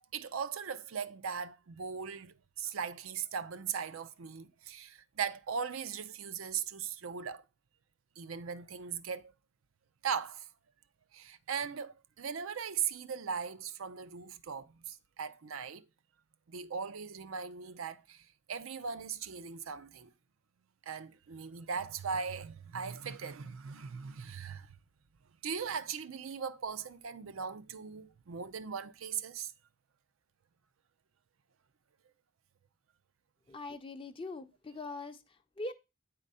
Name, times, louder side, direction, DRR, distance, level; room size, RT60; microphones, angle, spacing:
voice 1, 0.1-7.4 8.2-9.3 10.0-10.5 11.1-15.9 16.5-20.1 20.9-24.7 25.4-29.5, right 6 dB, 85° right, 0.5 m, -39 dB
voice 2, 33.5-35.7, left 2 dB, 25° left, 0.5 m, -42 dB
9.0 x 3.8 x 5.4 m
head